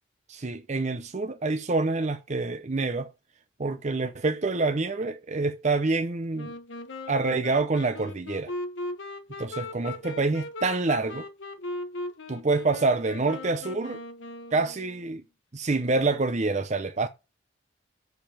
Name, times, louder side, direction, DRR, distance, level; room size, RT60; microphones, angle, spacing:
voice 1, 0.3-3.1 3.6-6.5 7.1-8.5 9.4-11.3 12.3-14.0 14.5-15.2 15.5-17.1, right 3 dB, 35° right, 0.6 m, -27 dB
Wind instrument woodwind instrument, 6.3-15.1, left 2 dB, 75° left, 1.3 m, -39 dB
6.9 x 5.9 x 6.9 m
head